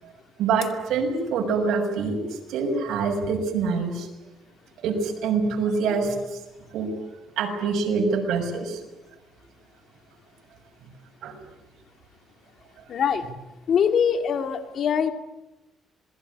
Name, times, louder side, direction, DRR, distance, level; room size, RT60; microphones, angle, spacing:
voice 1, 0.4-2.2 2.5-4.1 4.8-6.1 6.7-6.9 7.4-8.8 11.2-11.4, right 5 dB, 85° right, 3 dB, 6.6 m, -25 dB
voice 2, 12.9-13.2 13.7-15.1, left 7 dB, 55° left, 8 dB, 2.4 m, -23 dB
27.0 x 21.0 x 9.7 m, 1.0 s
cardioid pair, 130°, 0 cm